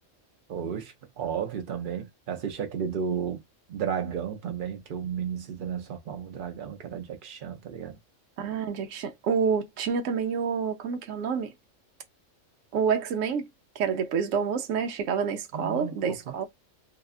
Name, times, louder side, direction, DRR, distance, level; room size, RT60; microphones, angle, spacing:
voice 1, 0.5-3.4 3.7-8.0 15.5-16.5, right 7 dB, 50° right, 0.7 m, -33 dB
voice 2, 8.4-11.5 12.7-13.5 13.8-16.5, right 6 dB, 75° right, 1.0 m, -28 dB
2.7 x 2.2 x 2.4 m
omnidirectional pair, 1.4 m